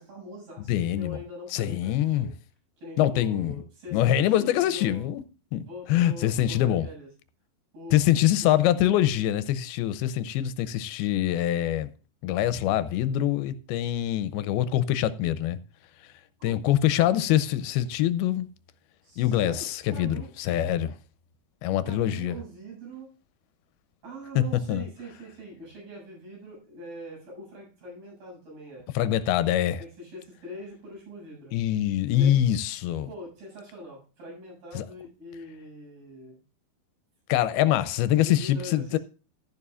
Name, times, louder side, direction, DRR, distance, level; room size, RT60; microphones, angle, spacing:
voice 1, 0.0-2.3 2.8-5.1 5.6-7.1 7.7-8.3 16.4-16.6 19.0-20.3 21.8-23.2 24.0-28.9 29.8-31.6 32.1-32.4 33.1-36.4 38.3-39.0, equal, 70° right, 9.1 m, -43 dB
voice 2, 0.7-1.2 1.5-2.3 3.0-3.6 3.9-5.2 5.5-6.9 7.9-11.9 12.2-15.6 16.4-18.5 19.2-20.9 21.6-22.3 24.4-24.9 29.0-29.8 31.5-33.1 34.7-34.9 37.3-39.0, left 12 dB, 85° left, 2.5 m, -24 dB
13.0 x 11.0 x 2.4 m
omnidirectional pair, 4.4 m